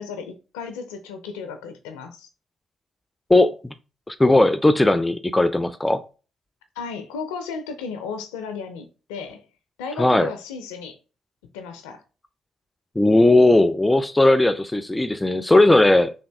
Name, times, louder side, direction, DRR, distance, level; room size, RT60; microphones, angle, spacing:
voice 1, 0.0-2.3 6.8-9.4 9.8-11.0 11.5-12.0, left 5 dB, 85° left, 0.4 m, -34 dB
voice 2, 3.3-3.7 4.1-6.0 10.0-10.3 13.0-16.1, left 2 dB, 15° left, 0.4 m, -17 dB
3.4 x 2.5 x 3.3 m
hypercardioid pair, 45°, 0 cm